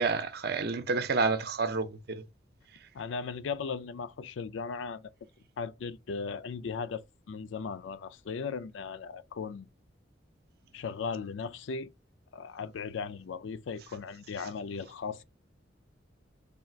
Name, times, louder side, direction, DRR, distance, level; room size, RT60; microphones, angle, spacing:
voice 1, 0.0-2.2, right 4 dB, 55° right, 0.6 m, -29 dB
voice 2, 2.9-5.1 5.6-9.7 10.7-11.9 12.3-15.2, left 5 dB, 75° left, 0.4 m, -37 dB
3.4 x 2.4 x 4.4 m
head